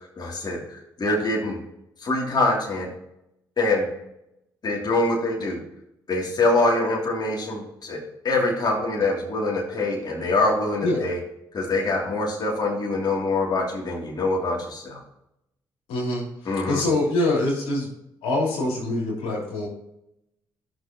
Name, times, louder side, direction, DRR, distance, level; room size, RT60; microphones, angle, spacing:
voice 1, 0.2-1.6 2.0-2.9 3.6-3.9 4.6-5.6 6.1-11.2 11.5-15.0 16.4-16.8, left 2 dB, 45° left, -2 dB, 2.8 m, -24 dB
voice 2, 15.9-17.9 18.2-19.7, left 2 dB, 75° left, -4 dB, 3.0 m, -25 dB
13.0 x 6.5 x 3.0 m, 0.82 s
hypercardioid pair, 50°, 10 cm